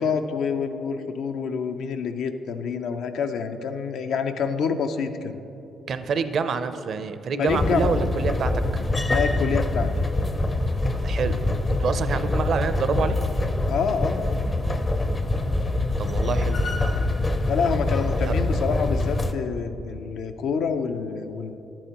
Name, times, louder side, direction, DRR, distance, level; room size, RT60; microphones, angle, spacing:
voice 1, 0.0-5.4 7.4-8.1 9.1-9.9 13.7-14.4 17.5-21.6, left 5 dB, 75° left, 7 dB, 0.5 m, -27 dB
voice 2, 5.9-8.8 11.0-13.2 16.0-16.6 18.3-18.4, right 5 dB, 60° right, 10 dB, 0.5 m, -27 dB
sound 1, 7.5-19.3, left 2 dB, 25° left, 0.5 m, -24 dB
11.0 x 8.6 x 2.9 m, 2.9 s
cardioid pair, 90°, 0 cm